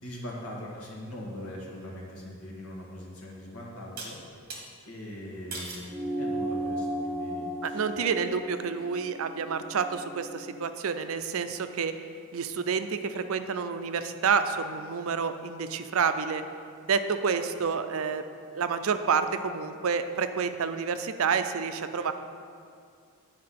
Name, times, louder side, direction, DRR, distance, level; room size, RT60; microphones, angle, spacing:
voice 1, 0.0-4.2 4.9-8.0, left 1 dB, 80° left, -3 dB, 1.8 m, -41 dB
sound 1, 4.0-4.6 5.5-5.9 6.5-7.0, right 3 dB, 45° right, 1.5 m, -40 dB
sound 2, 5.9-10.7, right 1 dB, 10° right, 0.6 m, -35 dB
voice 2, 7.6-11.9 12.3-16.4 16.8-18.2 18.5-22.1, right 6 dB, 70° right, 9 dB, 0.5 m, -29 dB
9.5 x 4.7 x 5.8 m, 2.3 s
head